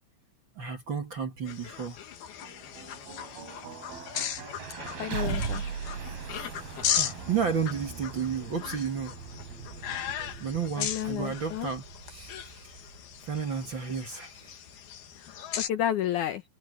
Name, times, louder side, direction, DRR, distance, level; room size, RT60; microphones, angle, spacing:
voice 1, 0.6-2.0 6.7-9.2 10.4-12.7 13.2-14.6 15.3-15.5, right 6 dB, 40° right, 1.9 m, -32 dB
sound 1, 1.5-15.7, left 10 dB, 85° left, 3.9 m, -37 dB
sound 2, 2.1-14.2, right 6 dB, 75° right, 5.2 m, -40 dB
voice 2, 5.0-5.6 10.8-11.7 15.2-16.4, left 11 dB, 70° left, 2.0 m, -31 dB
omnidirectional pair, 4.3 m